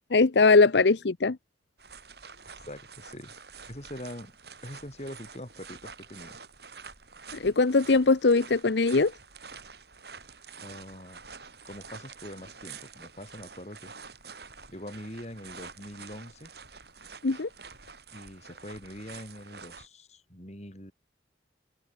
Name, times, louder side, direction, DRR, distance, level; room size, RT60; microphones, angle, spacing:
voice 1, 0.1-1.4 7.4-9.1 17.2-17.5, left 3 dB, 70° left, 0.7 m, -21 dB
sound 1, 1.8-19.9, right 5 dB, 60° right, 7.7 m, -48 dB
voice 2, 2.7-3.4 3.7-4.3 4.6-6.4 10.6-11.2 11.6-13.9 14.7-16.5 18.1-20.9, left 1 dB, 35° left, 5.2 m, -43 dB
head